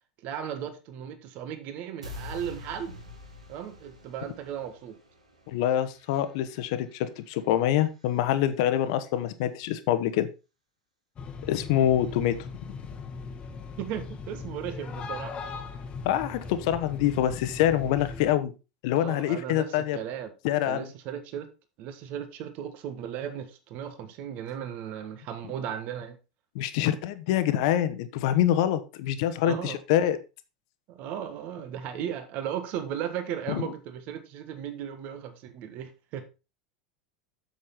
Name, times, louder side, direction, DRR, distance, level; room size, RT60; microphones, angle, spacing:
voice 1, 0.2-3.0 3.5-5.0 13.8-15.4 18.9-20.3 20.6-21.5 21.8-26.2 29.4-29.8 30.9-36.2, right 9 dB, 45° right, 1.6 m, -36 dB
sound 1, 2.0-8.2, left 2 dB, 80° right, 2.2 m, -47 dB
voice 2, 5.5-10.3 11.5-12.4 16.0-18.5 18.8-20.0 20.4-20.9 26.5-30.2 33.5-33.7, left 11 dB, 55° left, 1.2 m, -25 dB
sound 2, 11.2-18.3, left 4 dB, 30° left, 1.3 m, -39 dB
8.1 x 7.2 x 4.2 m
figure-of-eight pair, 80°, 4 cm